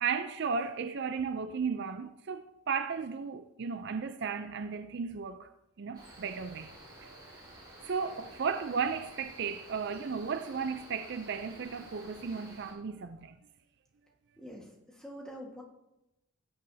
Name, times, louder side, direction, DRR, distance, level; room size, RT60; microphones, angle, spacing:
voice 1, 0.0-5.5 5.8-6.7 7.0-7.4 7.8-13.4, right 5 dB, 50° right, 0.4 m, -35 dB
Cricket, 5.9-12.7, right 1 dB, 20° right, 3.9 m, -51 dB
voice 2, 14.4-15.6, equal, 5° left, 1.5 m, -46 dB
16.5 x 9.4 x 2.7 m
head